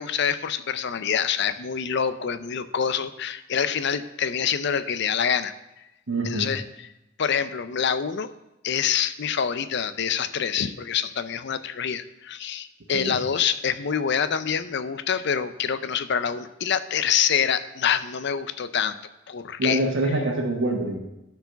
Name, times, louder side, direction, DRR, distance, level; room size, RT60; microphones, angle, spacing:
voice 1, 0.0-5.5 6.2-6.9 7.2-8.3 8.6-18.9 19.3-19.8, left 7 dB, 60° left, 13 dB, 0.5 m, -26 dB
voice 2, 6.1-6.5 12.9-13.2 19.6-21.0, right 1 dB, 80° right, 1 dB, 1.3 m, -25 dB
12.0 x 4.7 x 5.7 m, 0.93 s
head